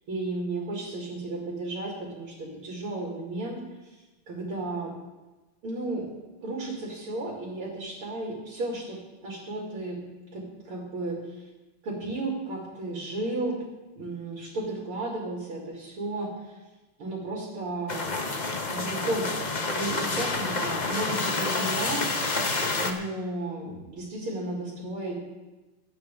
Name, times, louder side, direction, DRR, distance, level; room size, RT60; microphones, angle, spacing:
voice 1, 0.1-3.6 3.9-4.0 4.3-4.9 5.6-6.1 6.4-10.0 10.3-11.4 11.8-13.6 14.0-16.5 17.0-18.2 18.7-19.3 19.8-22.4 22.8-25.2, right 2 dB, 75° right, -3 dB, 3.5 m, -33 dB
sound 1, 17.9-22.9, left 3 dB, 40° left, 0.6 m, -28 dB
18.0 x 11.5 x 3.6 m, 1.1 s
omnidirectional pair, 2.4 m